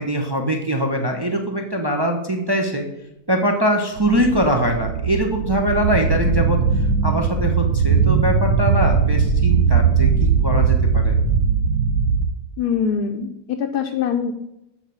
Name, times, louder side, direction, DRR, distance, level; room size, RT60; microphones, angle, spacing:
voice 1, 0.0-2.9 3.3-6.6 7.0-11.1, equal, 35° right, 2 dB, 0.4 m, -22 dB
sound 1, 4.0-12.3, right 5 dB, 85° right, 1.3 m, -19 dB
voice 2, 12.6-14.3, left 7 dB, 75° left, 4 dB, 1.1 m, -23 dB
7.2 x 4.6 x 6.9 m, 0.89 s
omnidirectional pair, 1.8 m